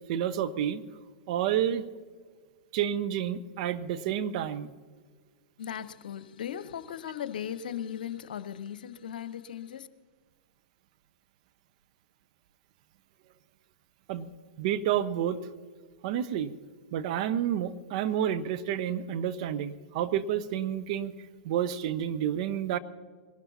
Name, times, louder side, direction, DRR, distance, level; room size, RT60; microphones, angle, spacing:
voice 1, 0.1-0.8 1.3-1.8 2.7-4.7 14.1-14.3 14.6-15.4 16.0-16.5 16.9-21.1 21.4-22.8, right 10 dB, 50° right, 12 dB, 1.0 m, -29 dB
voice 2, 5.6-9.9, left 9 dB, 65° left, 13 dB, 1.0 m, -37 dB
22.0 x 19.0 x 2.8 m, 1.5 s
figure-of-eight pair, 105°, 5 cm